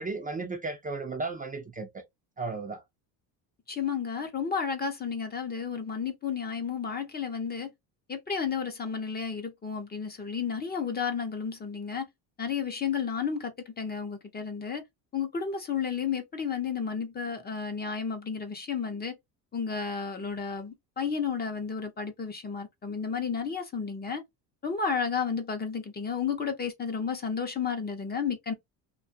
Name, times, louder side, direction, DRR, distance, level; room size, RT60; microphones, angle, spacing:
voice 1, 0.0-2.0 2.4-2.8, right 3 dB, 20° right, 0.5 m, -34 dB
voice 2, 3.7-7.7 8.1-12.1 12.4-14.8 15.1-19.1 19.5-24.2 24.6-28.5, left 6 dB, 20° left, 0.6 m, -32 dB
2.6 x 2.3 x 2.5 m
cardioid pair, 105°, 45 cm